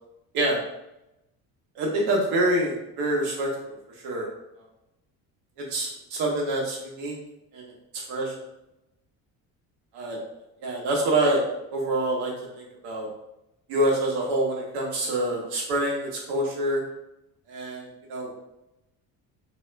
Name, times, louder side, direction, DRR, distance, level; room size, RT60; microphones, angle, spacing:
voice 1, 1.7-3.8 4.0-4.3 5.6-7.2 7.5-8.3 9.9-10.2 10.6-11.5 11.7-13.1 13.7-16.8 17.5-18.3, right 1 dB, 80° right, -1 dB, 1.3 m, -26 dB
5.2 x 2.8 x 2.3 m, 0.89 s
cardioid pair, 140°, 39 cm